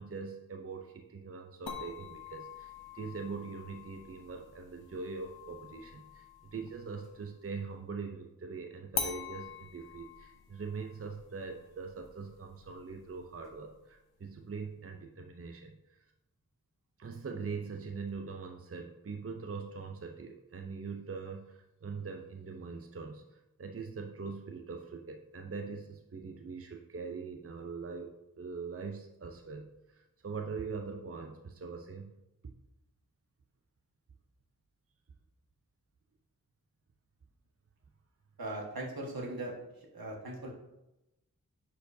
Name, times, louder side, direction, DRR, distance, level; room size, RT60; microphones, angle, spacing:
voice 1, 0.0-16.1 17.0-32.1, right 4 dB, 40° right, 4 dB, 0.6 m, -42 dB
sound 1, 1.7-7.3 8.9-13.9, left 5 dB, 90° left, 0.8 m, -45 dB
voice 2, 38.4-40.5, right 1 dB, 75° right, -1 dB, 1.5 m, -40 dB
9.9 x 4.5 x 2.7 m, 0.94 s
cardioid pair, 40°, 36 cm